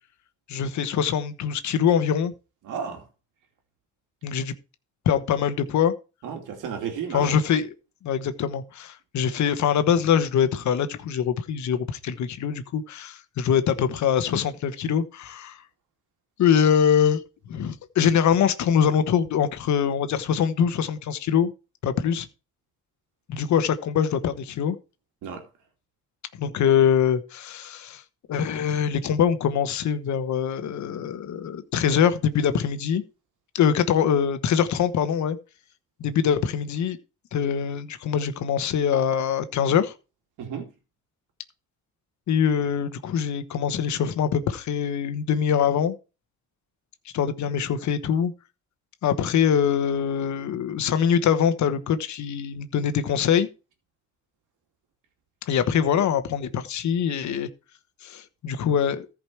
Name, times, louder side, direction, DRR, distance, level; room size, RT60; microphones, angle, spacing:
voice 1, 0.5-2.3 4.2-4.5 5.0-5.9 7.1-7.7 8.0-15.6 16.4-17.2 17.5-21.5 21.8-22.3 23.3-24.8 26.4-28.0 28.3-33.0 33.5-35.4 36.0-37.0 37.3-39.9 42.3-46.0 47.1-48.3 49.0-53.5 55.5-57.5 58.0-59.1, left 8 dB, 70° left, 1.2 m, -23 dB
voice 2, 2.6-3.0 6.2-7.4 25.2-25.4 40.4-40.7, right 7 dB, 90° right, 2.6 m, -33 dB
14.5 x 5.1 x 4.6 m
cardioid pair, 90°, 30 cm